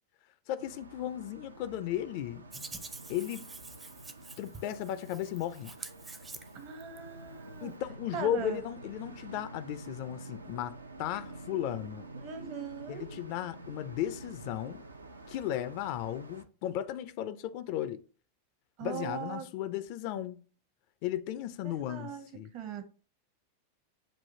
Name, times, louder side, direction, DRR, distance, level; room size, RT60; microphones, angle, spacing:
voice 1, 0.5-2.5 3.1-3.5 4.4-5.7 7.6-12.1 12.9-14.8 15.3-18.0 18.8-20.4 21.0-22.5, left 11 dB, 45° left, 0.4 m, -35 dB
sound 1, 0.6-16.4, right 2 dB, 80° right, 0.4 m, -49 dB
Hands, 2.5-7.0, right 3 dB, 15° right, 0.5 m, -47 dB
voice 2, 6.5-7.7 8.1-8.6 12.2-13.1 18.8-19.5 21.6-22.3 22.5-22.8, right 7 dB, 45° right, 0.8 m, -40 dB
7.2 x 2.5 x 2.7 m
figure-of-eight pair, 90°, 0 cm